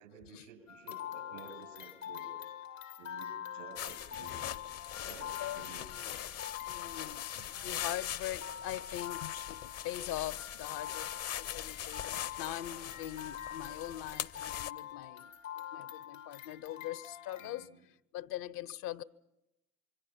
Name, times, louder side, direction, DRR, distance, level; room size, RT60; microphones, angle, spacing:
voice 1, 0.0-2.3 3.0-4.6 5.1-5.9 7.3-7.9 17.4-17.8, right 6 dB, 85° right, 7.8 m, -53 dB
sound 1, 0.7-17.7, left 10 dB, 90° left, 1.6 m, -45 dB
sound 2, 3.8-14.7, left 10 dB, 40° left, 0.7 m, -42 dB
voice 2, 5.4-6.2 6.6-17.7 18.1-19.0, left 13 dB, 65° left, 0.9 m, -42 dB
26.0 x 24.0 x 5.9 m
hypercardioid pair, 60°, 37 cm